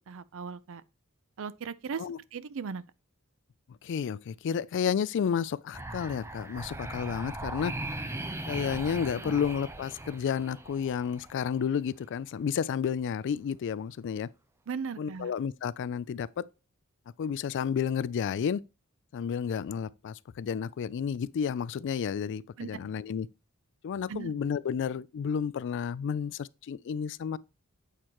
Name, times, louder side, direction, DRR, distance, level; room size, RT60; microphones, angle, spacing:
voice 1, 0.1-0.8 1.4-2.0 2.3-2.8 9.2-9.4 14.7-15.3 22.6-22.7 24.1-24.3, right 6 dB, 65° right, 0.5 m, -37 dB
voice 2, 3.7-7.7 8.5-14.3 15.0-16.4 17.2-18.6 19.1-23.3 23.8-27.4, left 7 dB, 55° left, 0.3 m, -31 dB
sound 1, 5.7-11.6, right 2 dB, 10° right, 0.6 m, -39 dB
8.3 x 4.4 x 3.0 m
head